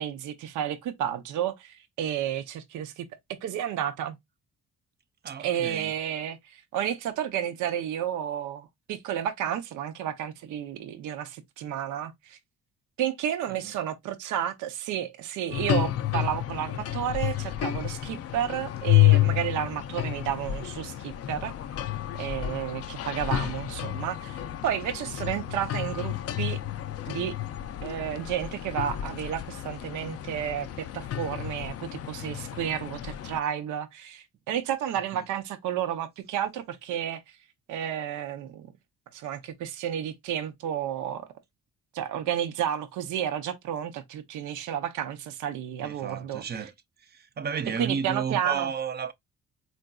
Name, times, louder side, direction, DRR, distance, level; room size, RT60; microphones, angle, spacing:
voice 1, 0.0-3.1 3.4-4.2 5.4-12.4 13.0-21.5 22.2-26.6 27.1-27.4 27.8-37.2 37.7-38.7 39.1-41.3 41.9-46.7 47.8-48.7, right 10 dB, 80° right, 0.6 m, -31 dB
voice 2, 5.2-5.9 13.5-13.6 23.4-23.5 35.1-35.2 45.8-46.7 47.1-49.1, right 6 dB, 35° right, 0.5 m, -33 dB
sound 1, 15.5-33.4, left 14 dB, 55° left, 0.4 m, -30 dB
3.8 x 2.5 x 2.2 m
cardioid pair, 90°, 30 cm